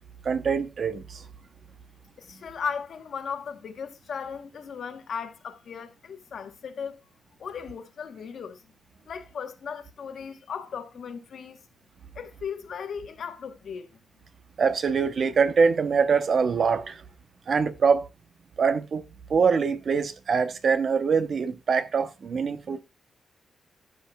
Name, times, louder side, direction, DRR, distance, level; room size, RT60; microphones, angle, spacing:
voice 1, 0.2-1.2 14.6-17.0 17.5-18.1 18.6-19.0 19.3-22.8, right 5 dB, 50° right, 0.8 m, -24 dB
voice 2, 2.2-7.0 7.4-8.6 9.1-11.6 12.1-13.9, left 6 dB, 60° left, 1.1 m, -36 dB
15.0 x 5.6 x 2.3 m
wide cardioid pair, 135°, 0 cm